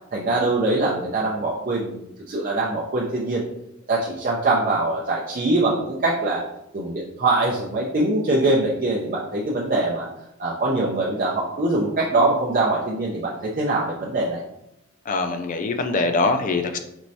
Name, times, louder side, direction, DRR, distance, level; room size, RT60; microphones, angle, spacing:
voice 1, 0.1-3.4 3.9-6.4 6.7-10.1 10.4-14.4, right 2 dB, 45° right, -4 dB, 0.5 m, -23 dB
voice 2, 15.1-16.8, left 3 dB, 40° left, 7 dB, 0.4 m, -23 dB
4.5 x 3.1 x 2.7 m, 0.82 s
head